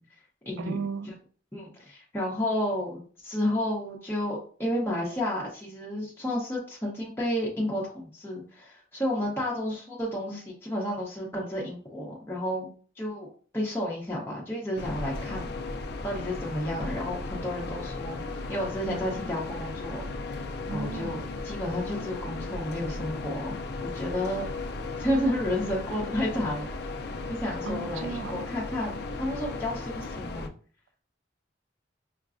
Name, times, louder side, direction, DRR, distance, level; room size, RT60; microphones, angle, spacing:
voice 1, 0.6-1.1 20.7-21.2 27.6-28.5, right 4 dB, 90° right, 11 dB, 0.4 m, -35 dB
voice 2, 1.5-12.7 13.0-13.3 13.5-15.5 16.0-18.2 18.5-20.0 20.3-20.4 20.7-24.5 25.0-26.7 27.3-30.5, left 1 dB, 10° left, -5 dB, 0.8 m, -31 dB
sound 1, 14.8-30.5, left 3 dB, 60° left, 0.4 m, -36 dB
5.6 x 2.2 x 2.5 m, 0.41 s
head